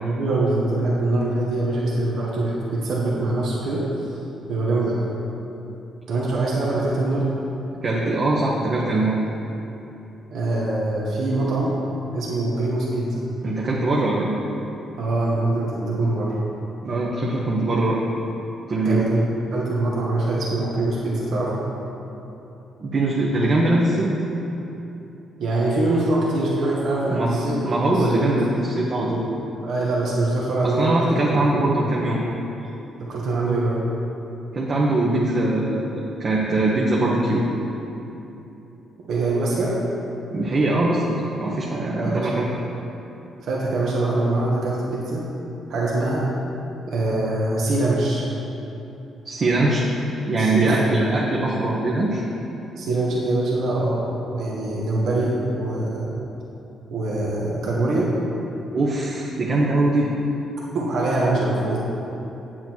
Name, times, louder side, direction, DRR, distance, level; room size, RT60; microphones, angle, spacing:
voice 1, 0.0-3.8 4.5-5.0 6.1-7.3 10.3-11.7 12.1-13.2 15.0-16.3 18.8-19.2 19.5-21.6 25.4-28.2 28.5-28.7 29.6-31.3 33.1-33.8 39.1-39.7 42.0-42.3 43.4-45.2 45.7-46.2 46.9-48.3 50.4-50.8 51.2-51.3 52.8-54.0 54.3-56.2 56.9-58.1 60.7-61.8, right 2 dB, 70° right, -5 dB, 1.7 m, -23 dB
voice 2, 7.8-9.2 13.4-14.3 16.8-18.0 18.7-19.1 22.8-24.1 27.1-29.2 30.6-32.2 34.5-37.4 40.3-42.5 49.2-49.9 50.3-52.2 58.7-60.1, right 2 dB, 45° right, -4 dB, 1.2 m, -22 dB
8.1 x 7.9 x 4.7 m, 3.0 s
cardioid pair, 90°, 0 cm